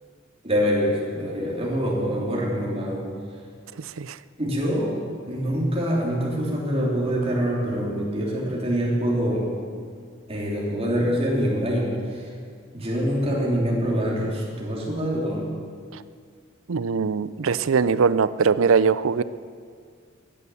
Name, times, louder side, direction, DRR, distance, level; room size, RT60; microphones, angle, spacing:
voice 1, 0.4-3.1 4.4-4.9 5.3-9.5 10.3-12.3 12.7-15.5, equal, 30° right, -3 dB, 3.3 m, -25 dB
voice 2, 3.8-4.2 15.9-16.0 16.7-19.2, right 5 dB, 85° right, 16 dB, 0.5 m, -21 dB
15.5 x 11.0 x 7.1 m, 2.1 s
head